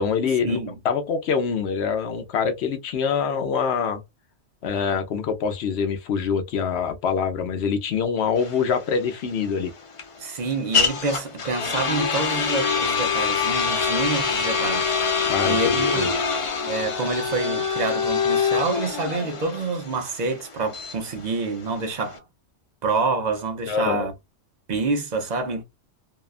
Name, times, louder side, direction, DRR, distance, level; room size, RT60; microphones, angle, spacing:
voice 1, 0.0-4.0 4.6-9.7 15.3-16.2 23.7-24.1, left 6 dB, 70° left, 0.9 m, -25 dB
sound 1, 8.4-22.2, left 5 dB, 45° left, 0.4 m, -25 dB
voice 2, 10.2-14.9 15.4-16.2 16.7-22.2 22.8-24.1 24.7-25.6, right 3 dB, 45° right, 0.7 m, -27 dB
2.8 x 2.2 x 2.3 m
omnidirectional pair, 1.2 m